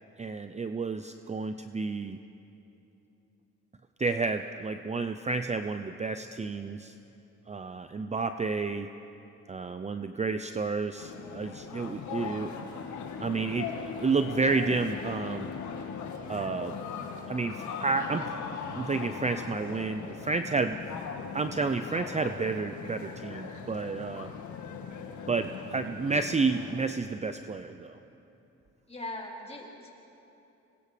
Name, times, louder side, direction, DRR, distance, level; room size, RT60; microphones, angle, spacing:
voice 1, 0.2-2.2 4.0-6.9 7.5-8.9 9.5-12.5 13.2-15.5 16.3-16.7 17.3-18.3 18.7-20.8 21.3-24.3 25.3-27.9, right 4 dB, 20° right, 9 dB, 0.7 m, -30 dB
sound 1, 11.0-26.8, left 6 dB, 70° left, 1.9 m, -40 dB
Bowed string instrument, 12.5-17.5, left 6 dB, 40° left, 1.3 m, -44 dB
voice 2, 23.3-23.9 24.7-24.8 28.9-29.9, left 2 dB, 20° left, -2 dB, 4.4 m, -42 dB
26.5 x 21.5 x 5.2 m, 3.0 s
cardioid pair, 90°, 30 cm